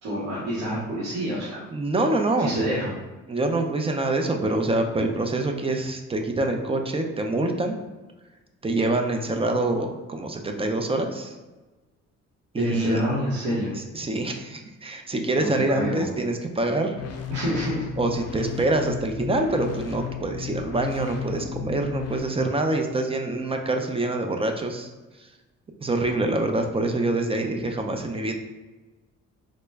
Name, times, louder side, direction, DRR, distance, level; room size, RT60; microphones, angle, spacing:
voice 1, 0.0-1.6 2.4-3.0 12.6-13.7 15.4-16.1 17.3-17.9, equal, 90° right, -9 dB, 1.1 m, -27 dB
voice 2, 1.7-2.7 3.3-7.7 8.6-11.4 12.5-13.0 13.9-17.0 18.0-24.9 25.8-28.3, right 2 dB, 20° right, 4 dB, 0.4 m, -25 dB
sound 1, 16.9-22.2, left 8 dB, 55° left, 0.5 m, -34 dB
3.8 x 2.1 x 3.4 m, 1.2 s
cardioid pair, 90°, 30 cm